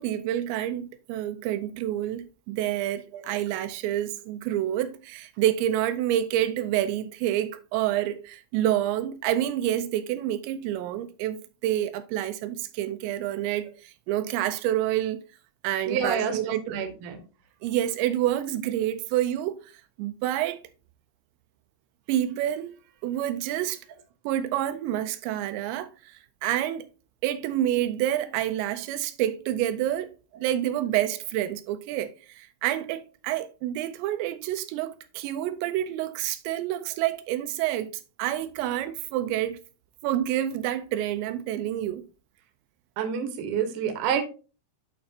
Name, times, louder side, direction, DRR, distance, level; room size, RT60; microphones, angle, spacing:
voice 1, 0.0-15.2 15.6-16.6 17.6-19.7 20.0-20.6 22.1-22.7 23.0-23.8 24.3-26.9 27.2-37.9 38.2-39.6 40.0-42.1, right 12 dB, 85° right, 2.8 m, -28 dB
voice 2, 15.9-17.2 43.0-44.2, right 7 dB, 65° right, 2.1 m, -28 dB
11.0 x 4.3 x 2.8 m
omnidirectional pair, 5.1 m